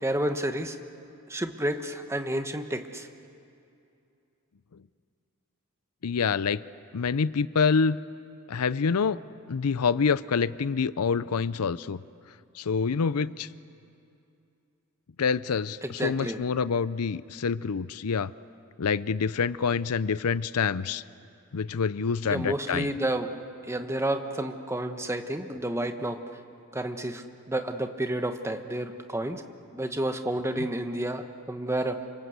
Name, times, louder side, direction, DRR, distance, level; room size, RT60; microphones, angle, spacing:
voice 1, 0.0-0.8 1.3-3.1 15.8-16.4 22.3-23.3 23.7-26.2 26.7-29.4 29.7-32.0, right 1 dB, 10° right, 7 dB, 1.2 m, -30 dB
voice 2, 6.0-6.6 6.9-8.0 8.5-9.2 9.5-12.0 12.6-13.5 15.2-18.3 18.8-21.0 21.5-22.9 30.6-30.7, left 5 dB, 80° left, 17 dB, 0.6 m, -26 dB
28.5 x 26.0 x 8.1 m, 2.6 s
head